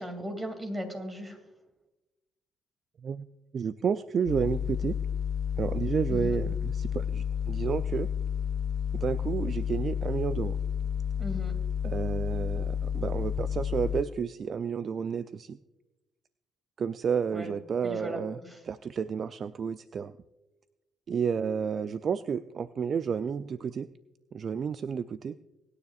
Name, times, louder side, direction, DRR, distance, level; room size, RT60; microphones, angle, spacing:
voice 1, 0.0-1.4 6.1-6.4 11.2-11.5 17.3-17.5 17.8-18.6, equal, 20° right, 6 dB, 2.5 m, -37 dB
voice 2, 3.5-5.0 5.6-8.1 8.9-10.6 11.8-15.6 16.8-18.4 18.7-20.1 21.1-23.9 24.3-25.3, right 6 dB, 50° right, 13 dB, 0.3 m, -31 dB
sound 1, 4.3-14.0, left 8 dB, 75° left, 0.5 m, -31 dB
24.0 x 9.7 x 2.4 m, 1.0 s
cardioid pair, 90°, 0 cm